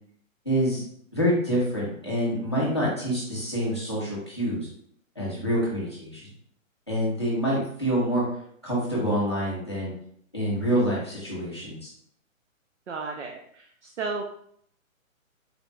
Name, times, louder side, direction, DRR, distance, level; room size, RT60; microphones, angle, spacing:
voice 1, 0.5-0.8 1.1-4.7 5.2-6.2 6.9-8.2 8.6-9.9 10.3-11.9, equal, 20° left, -6 dB, 0.6 m, -26 dB
voice 2, 12.9-14.2, right 4 dB, 60° right, 2 dB, 0.5 m, -34 dB
4.0 x 2.2 x 3.1 m, 0.67 s
hypercardioid pair, 180°, 41 cm